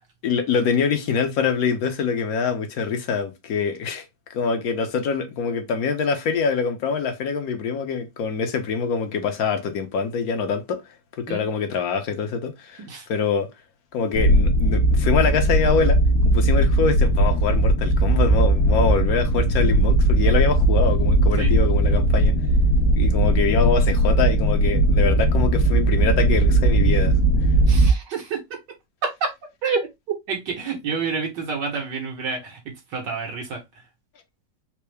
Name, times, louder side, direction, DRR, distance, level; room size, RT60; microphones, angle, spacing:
voice 1, 0.2-4.0 4.3-10.8 11.2-12.8 13.1-13.5 13.9-22.3 22.9-27.2, left 5 dB, 65° left, 1.1 m, -24 dB
sound 1, 14.1-27.9, right 1 dB, 85° left, 1.4 m, -18 dB
voice 2, 27.7-28.6 29.0-29.3 29.6-29.9 30.3-33.6, right 5 dB, 75° right, 1.6 m, -28 dB
4.5 x 2.0 x 3.2 m
omnidirectional pair, 1.9 m